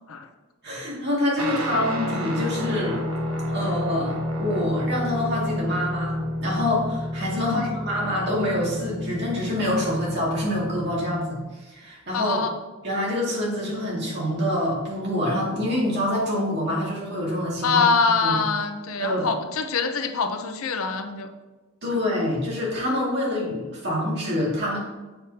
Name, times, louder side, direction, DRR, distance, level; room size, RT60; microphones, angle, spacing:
voice 1, 0.6-3.0 3.5-6.2 6.4-12.4 12.8-18.0 18.2-18.4 19.0-19.3 21.8-24.8, left 1 dB, 50° right, -4 dB, 2.1 m, -26 dB
Guitar, 1.4-11.1, left 1 dB, 90° right, 1.1 m, -30 dB
voice 2, 7.4-7.7 12.1-12.5 17.6-21.3 21.9-22.0, left 4 dB, 75° left, 7 dB, 0.6 m, -24 dB
8.0 x 5.1 x 2.8 m, 1.2 s
head